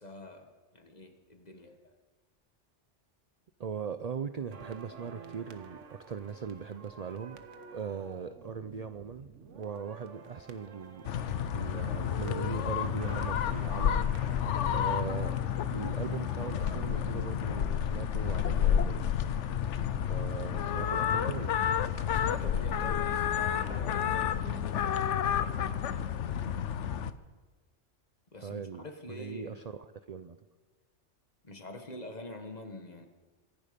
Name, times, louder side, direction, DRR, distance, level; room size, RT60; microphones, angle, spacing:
voice 1, 0.0-2.0 22.0-25.2 28.3-29.6 31.4-33.1, left 2 dB, 35° left, 5 dB, 1.6 m, -46 dB
voice 2, 3.6-7.4 7.7-9.3 9.5-11.1 11.5-14.0 14.7-15.4 15.6-19.0 19.9-21.5 28.4-30.4, right 6 dB, 45° right, 11 dB, 0.5 m, -39 dB
sound 1, 4.5-18.7 18.9-19.1, right 5 dB, 85° right, 1.4 m, -51 dB
sound 2, 11.0-27.1, left 9 dB, 80° left, 1.0 m, -30 dB
25.0 x 11.0 x 5.2 m, 1.3 s
omnidirectional pair, 1.2 m